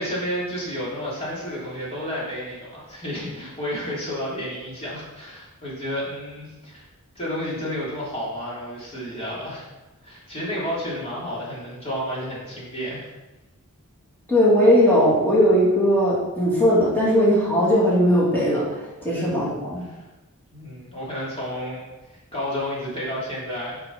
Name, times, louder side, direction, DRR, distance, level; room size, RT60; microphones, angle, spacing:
voice 1, 0.0-6.8 7.1-9.7 10.0-13.1 19.1-19.2 19.8-20.1 20.5-21.8 22.1-23.9, equal, 25° left, -6 dB, 3.0 m, -31 dB
voice 2, 14.3-18.6 19.0-19.9, equal, 10° left, -7 dB, 2.6 m, -18 dB
9.7 x 5.2 x 4.0 m, 1.1 s
head